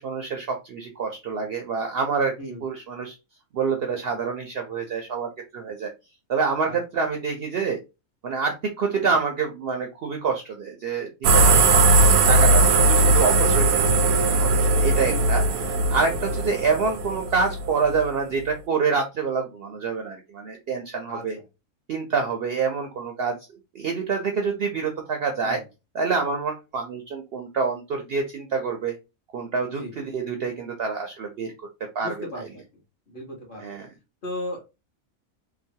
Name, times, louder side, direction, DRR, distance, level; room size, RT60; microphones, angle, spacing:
voice 1, 0.0-2.3 2.6-3.1 3.5-5.9 6.3-7.8 8.2-11.1 11.3-11.9 12.3-21.4 21.9-23.4 23.7-25.6 25.9-29.0 29.3-31.7 31.9-32.5 33.6-33.9, right 5 dB, 65° right, 3 dB, 0.6 m, -27 dB
sound 1, 11.2-18.1, right 2 dB, 90° right, 1.0 m, -19 dB
voice 2, 21.1-21.4 25.4-25.6 29.8-29.9 32.0-32.6 33.1-33.6 34.2-34.6, left 1 dB, 45° left, -1 dB, 1.0 m, -36 dB
2.9 x 2.2 x 2.6 m, 0.26 s
omnidirectional pair, 1.4 m